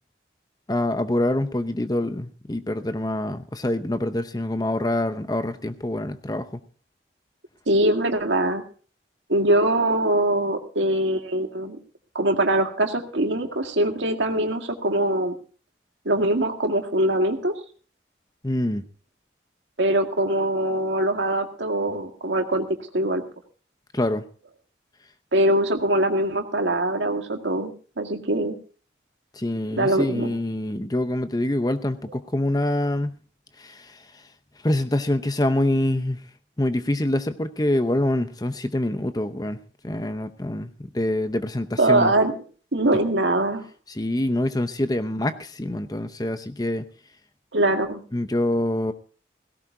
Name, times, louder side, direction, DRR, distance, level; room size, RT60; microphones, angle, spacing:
voice 1, 0.7-6.6 18.4-18.8 23.9-24.2 29.3-33.2 33.6-34.3 34.6-36.2 36.6-39.6 39.8-42.1 43.9-46.9 48.1-48.9, left 1 dB, 20° left, 10 dB, 0.7 m, -25 dB
voice 2, 7.7-8.6 9.3-11.8 12.2-15.3 16.1-17.5 19.8-23.2 25.3-28.6 29.8-30.3 41.8-42.3 42.7-43.6 47.5-48.0, right 1 dB, 85° right, 5 dB, 1.9 m, -22 dB
17.5 x 17.0 x 2.7 m, 0.40 s
head